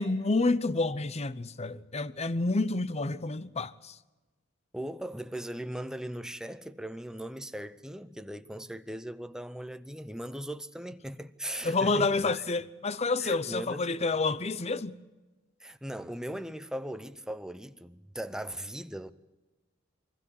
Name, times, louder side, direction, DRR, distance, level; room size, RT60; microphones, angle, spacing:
voice 1, 0.0-4.0 11.6-15.0, left 3 dB, 30° left, 0.7 m, -29 dB
voice 2, 4.7-12.4 13.2-14.1 15.6-19.1, right 1 dB, 5° right, 0.8 m, -39 dB
24.0 x 15.5 x 8.2 m
head